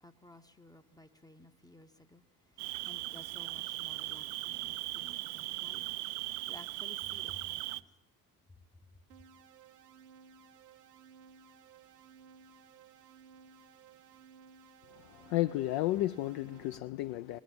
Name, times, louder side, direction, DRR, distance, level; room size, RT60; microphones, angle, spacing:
voice 1, 0.0-7.9, left 2 dB, 10° left, 0.7 m, -56 dB
Cricket, 2.6-7.8, right 19 dB, 50° right, 0.6 m, -39 dB
sound 1, 9.1-16.8, right 6 dB, 80° right, 1.0 m, -58 dB
voice 2, 14.9-17.4, left 16 dB, 50° left, 0.5 m, -33 dB
19.0 x 7.1 x 8.5 m
figure-of-eight pair, 50°, 48 cm